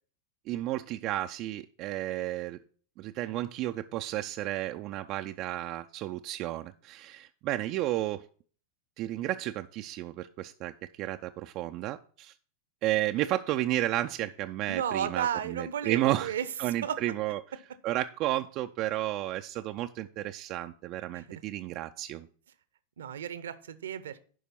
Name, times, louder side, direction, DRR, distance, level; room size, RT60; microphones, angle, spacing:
voice 1, 0.5-2.6 3.0-8.2 9.0-10.7 11.0-12.3 12.8-16.3 16.6-17.4 17.8-22.3, right 14 dB, 40° right, 7 dB, 0.4 m, -32 dB
voice 2, 14.7-17.1 21.1-21.4 23.0-24.2, right 9 dB, 65° right, 15 dB, 0.8 m, -34 dB
11.0 x 5.1 x 4.2 m, 0.43 s
figure-of-eight pair, 90°, 0 cm